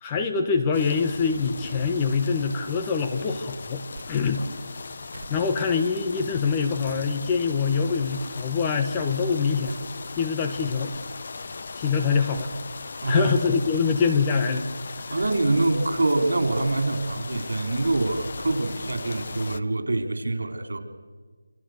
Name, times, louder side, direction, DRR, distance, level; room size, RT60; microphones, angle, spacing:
voice 1, 0.0-4.4 5.3-9.7 10.2-10.9 11.7-12.5 13.1-14.7, left 5 dB, 15° left, 5 dB, 1.2 m, -24 dB
sound 1, 0.7-19.6, left 4 dB, 40° left, 1.0 m, -38 dB
sound 2, 3.9-4.1 4.8-4.9 5.1-5.4 6.6-7.0 7.7-8.3 9.4-9.5 9.6-9.8 10.6-11.1 12.1-12.5 13.4-13.8 15.0-15.3 16.2-16.6, right 3 dB, 40° right, 3.8 m, -44 dB
voice 2, 13.0-13.3 15.1-20.8, right 2 dB, 70° right, 6 dB, 4.4 m, -25 dB
28.5 x 27.0 x 6.8 m, 1.5 s
figure-of-eight pair, 170°, 0 cm